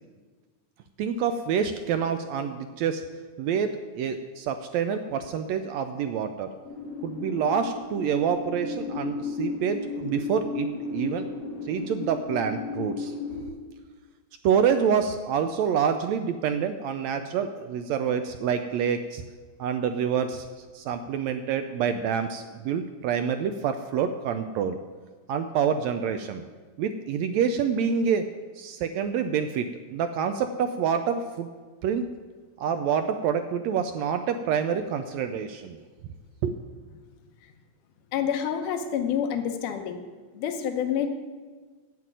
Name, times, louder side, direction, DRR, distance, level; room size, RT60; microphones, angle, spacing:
voice 1, 1.0-3.0 3.4-6.5 7.0-11.3 11.7-13.1 14.4-19.2 19.6-20.5 20.7-24.8 25.3-26.4 26.8-28.3 28.6-31.5 31.8-32.1 32.6-35.8 36.4-36.6, right 7 dB, 80° right, 8 dB, 1.6 m, -27 dB
sound 1, 6.6-13.4, left 4 dB, 60° left, 3.1 m, -34 dB
voice 2, 38.1-40.0 40.3-41.1, left 8 dB, 90° left, 6 dB, 2.4 m, -28 dB
8.4 x 7.6 x 9.0 m, 1.4 s
omnidirectional pair, 3.5 m